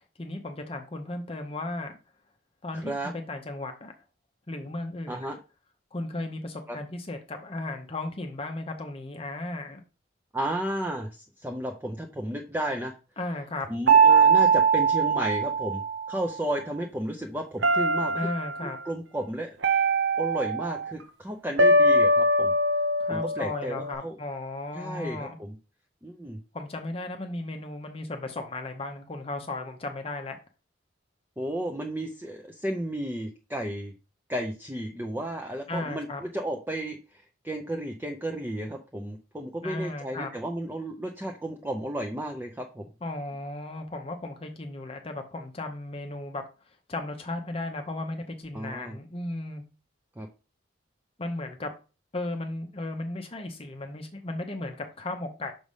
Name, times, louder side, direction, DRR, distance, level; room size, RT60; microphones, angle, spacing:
voice 1, 0.2-2.0 2.6-3.9 4.5-5.3 5.9-9.8 13.2-13.7 18.1-18.8 23.0-25.4 26.5-30.4 35.7-36.2 39.6-40.3 43.0-46.4 46.9-49.6 51.2-51.7 52.1-55.5, left 2 dB, 30° left, 5 dB, 0.7 m, -35 dB
voice 2, 10.3-11.1 11.4-12.9 13.7-18.3 18.6-19.5 20.2-22.5 23.1-24.2 24.7-25.6 26.0-26.4 31.4-33.9 34.3-42.9 48.5-49.0 50.2-50.3, right 1 dB, 10° right, 2 dB, 0.5 m, -33 dB
sound 1, 13.9-16.2 17.6-18.6 19.6-20.9 21.6-23.9, right 3 dB, 60° right, 0.7 m, -22 dB
6.2 x 3.3 x 5.4 m, 0.32 s
head